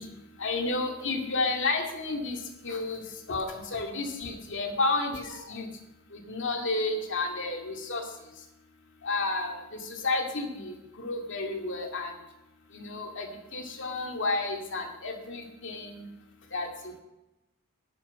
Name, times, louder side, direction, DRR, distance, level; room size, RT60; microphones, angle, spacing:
voice 1, 0.0-5.7 6.1-8.5 9.0-12.2 12.7-16.1 16.5-17.0, left 3 dB, 60° left, 3 dB, 2.2 m, -32 dB
12.0 x 12.0 x 5.5 m, 0.96 s
head